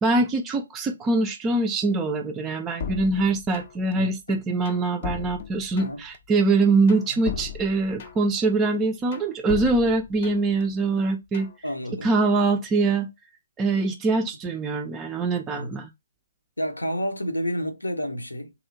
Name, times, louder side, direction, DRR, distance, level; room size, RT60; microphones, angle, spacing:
voice 1, 0.0-11.5 12.0-13.1 13.6-15.9, right 3 dB, 15° right, 0.3 m, -23 dB
sound 1, 2.8-3.9 4.3-6.2 6.5-8.4 8.7-10.6 11.0-11.6, left 6 dB, 45° left, 0.5 m, -36 dB
voice 2, 11.6-12.1 15.5-15.8 16.6-18.5, equal, 85° left, 0.7 m, -29 dB
3.0 x 2.7 x 2.5 m
figure-of-eight pair, 135°, 0 cm